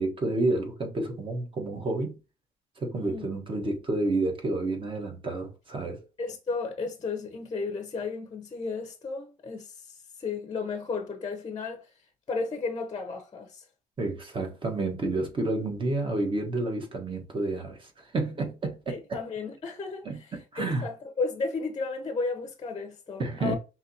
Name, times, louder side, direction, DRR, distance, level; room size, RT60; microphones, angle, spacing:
voice 1, 0.0-2.2 2.8-6.0 14.0-19.2 20.0-20.9 23.2-23.6, right 2 dB, 30° right, 1.3 m, -30 dB
voice 2, 3.0-3.3 6.2-11.9 12.3-13.6 18.9-23.5, left 4 dB, 25° left, 0.8 m, -34 dB
5.6 x 2.9 x 2.8 m
cardioid pair, 110°, 17 cm